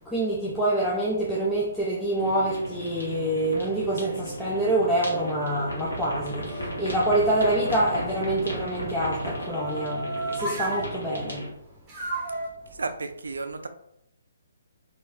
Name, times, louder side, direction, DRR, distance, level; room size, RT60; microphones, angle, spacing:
voice 1, 0.1-11.5, right 1 dB, 5° left, -6 dB, 0.4 m, -26 dB
sound 1, 2.2-11.5, right 1 dB, 70° left, 1.1 m, -35 dB
sound 2, 2.6-3.4 3.9-7.9 8.7-10.9 11.9-12.5, right 2 dB, 15° right, 0.9 m, -37 dB
voice 2, 12.7-13.7, right 3 dB, 65° right, 9 dB, 0.3 m, -33 dB
3.0 x 2.6 x 2.5 m, 0.78 s
figure-of-eight pair, 135°, 0 cm